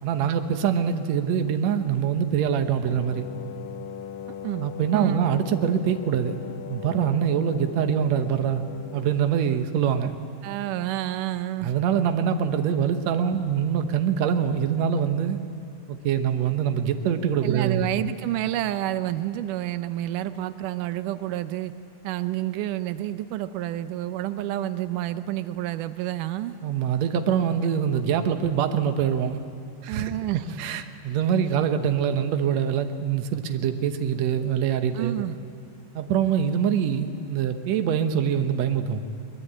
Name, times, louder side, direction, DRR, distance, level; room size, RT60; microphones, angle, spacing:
voice 1, 0.0-3.3 4.6-6.4 6.7-8.6 8.9-10.2 11.6-15.4 15.9-17.9 26.6-29.4 29.8-30.1 30.6-35.2 35.9-39.0, right 8 dB, 65° right, 7 dB, 2.2 m, -24 dB
Wind instrument woodwind instrument, 2.8-9.4, left 8 dB, 75° left, 1.8 m, -39 dB
voice 2, 4.9-5.2 10.4-11.7 17.4-21.7 22.0-26.6 29.9-30.6 35.0-35.4, right 14 dB, 90° right, 12 dB, 2.3 m, -29 dB
23.5 x 21.0 x 8.8 m, 2.4 s
omnidirectional pair, 3.6 m